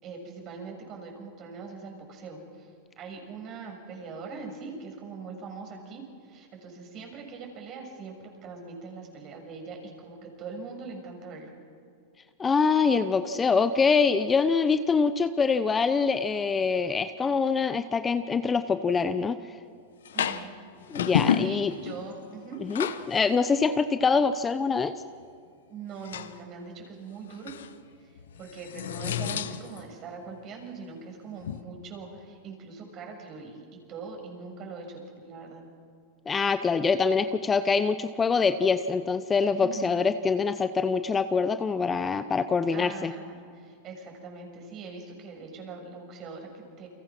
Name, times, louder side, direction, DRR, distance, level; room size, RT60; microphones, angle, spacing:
voice 1, 0.0-2.7 3.0-8.1 8.4-11.5 20.1-20.5 21.4-22.6 25.7-27.5 28.0-28.1 28.4-35.6 39.6-40.0 42.7-46.9, right 4 dB, 40° right, 2 dB, 6.7 m, -42 dB
voice 2, 12.4-19.4 20.9-21.7 22.7-24.9 36.3-43.1, left 5 dB, 20° left, 11 dB, 0.8 m, -24 dB
sound 1, 20.1-20.5 20.8-22.1 22.5-23.2 23.5-23.6 26.0-26.4 27.3-27.7 28.2-29.9 31.4-31.6, left 9 dB, 85° left, 1.1 m, -30 dB
29.0 x 23.5 x 6.1 m, 2.3 s
hypercardioid pair, 120°, 0 cm